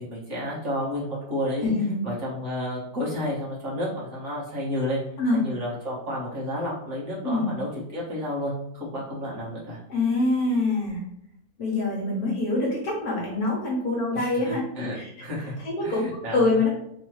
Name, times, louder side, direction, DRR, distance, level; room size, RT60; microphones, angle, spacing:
voice 1, 0.0-1.7 2.0-5.0 5.3-9.8 14.1-15.6 15.8-16.5, left 1 dB, 45° right, -6 dB, 1.6 m, -31 dB
voice 2, 1.6-2.0 5.2-5.4 7.2-7.5 9.9-11.0 11.6-14.6 14.9-15.1 15.6-16.0 16.3-16.7, left 2 dB, 65° left, -2 dB, 1.6 m, -24 dB
3.9 x 2.9 x 3.1 m, 0.75 s
omnidirectional pair, 1.8 m